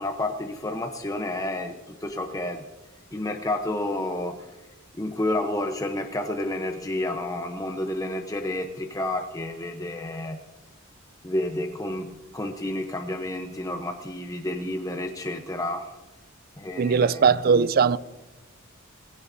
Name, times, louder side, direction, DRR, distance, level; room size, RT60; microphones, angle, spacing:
voice 1, 0.0-2.6 3.1-4.4 5.0-10.4 11.2-16.0 16.6-17.3, left 1 dB, 15° left, 0.8 m, -30 dB
voice 2, 16.8-18.0, right 5 dB, 45° right, 0.4 m, -19 dB
19.5 x 16.5 x 2.7 m
head